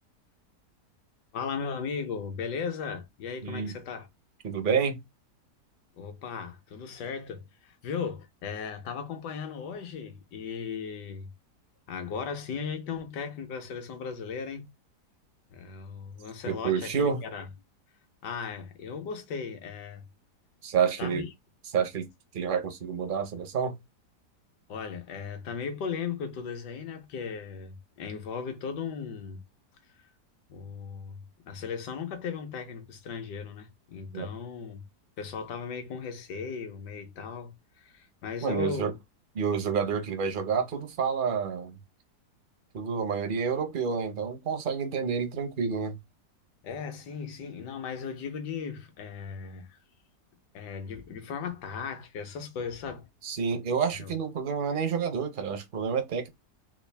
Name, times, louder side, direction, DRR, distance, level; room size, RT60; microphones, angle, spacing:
voice 1, 1.3-4.1 6.0-11.3 11.9-14.7 15.5-17.5 18.2-20.0 21.0-21.3 24.7-29.4 30.0-30.1 30.5-31.2 31.5-34.8 35.2-38.9 46.6-49.8 50.5-53.1 54.0-54.1, left 6 dB, 80° left, 1.4 m, -37 dB
voice 2, 3.4-3.7 4.4-5.0 16.5-17.2 20.6-21.2 21.7-22.1 22.3-23.8 34.1-34.3 38.4-38.9 39.4-41.8 42.7-46.0 53.2-56.3, right 6 dB, 60° right, 0.5 m, -29 dB
3.6 x 2.4 x 3.3 m
omnidirectional pair, 1.8 m